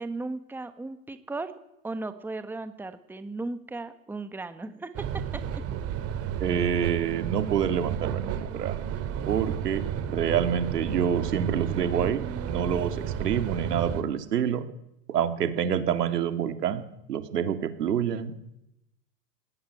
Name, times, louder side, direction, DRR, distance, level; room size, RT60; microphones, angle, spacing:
voice 1, 0.0-1.5 1.8-4.9 5.5-5.6, right 3 dB, 5° right, 10 dB, 1.3 m, -36 dB
sound 1, 4.9-14.0, right 8 dB, 30° right, 2.3 m, -32 dB
voice 2, 6.4-8.7 9.3-14.7 15.1-18.3, right 8 dB, 85° right, 10 dB, 2.4 m, -27 dB
18.5 x 17.5 x 9.9 m, 0.85 s
hypercardioid pair, 125°, 46 cm